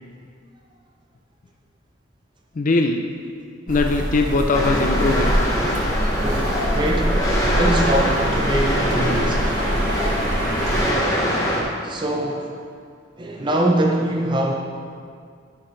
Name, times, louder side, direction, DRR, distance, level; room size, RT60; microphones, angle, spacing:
voice 1, 2.6-3.0 3.7-5.3, left 3 dB, 45° left, 4 dB, 0.4 m, -20 dB
sound 1, 3.7-10.9, equal, 50° right, 1.7 m, -24 dB
sound 2, 4.5-11.6, equal, 20° left, 1.0 m, -23 dB
voice 2, 6.1-7.3 7.5-9.6 11.8-12.5 13.2-14.5, right 1 dB, 25° right, 0 dB, 0.5 m, -23 dB
11.0 x 5.8 x 3.1 m, 2.2 s
head